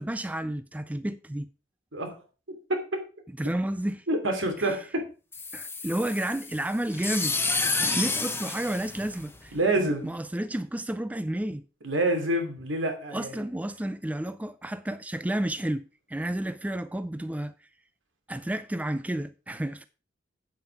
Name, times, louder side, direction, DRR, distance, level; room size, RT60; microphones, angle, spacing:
voice 1, 0.0-1.5 3.4-4.0 4.6-4.7 5.5-7.4 7.8-11.6 13.1-17.5 18.3-19.8, right 1 dB, 10° right, 0.4 m, -31 dB
voice 2, 2.7-3.0 4.1-5.1 9.5-10.1 11.8-13.3, right 1 dB, 80° right, 2.9 m, -27 dB
sound 1, 5.3-9.7, left 3 dB, 10° left, 1.0 m, -30 dB
8.8 x 7.8 x 4.7 m
head